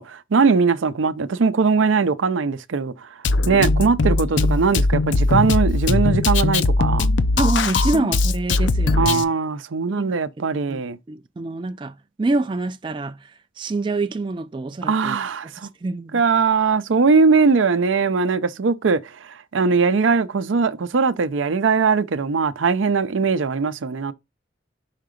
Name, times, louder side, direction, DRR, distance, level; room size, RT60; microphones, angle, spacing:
voice 1, 0.0-3.1 3.4-7.1 9.0-11.0 14.9-15.7 16.1-19.0 19.5-24.1, right 4 dB, 85° right, 0.5 m, -20 dB
Drum kit, 3.2-9.2, left 3 dB, 75° left, 0.5 m, -20 dB
voice 2, 7.4-9.3 9.9-10.2 10.7-10.8 11.1-15.2 15.8-16.2, right 2 dB, 25° right, 0.3 m, -26 dB
5.8 x 3.8 x 5.0 m
head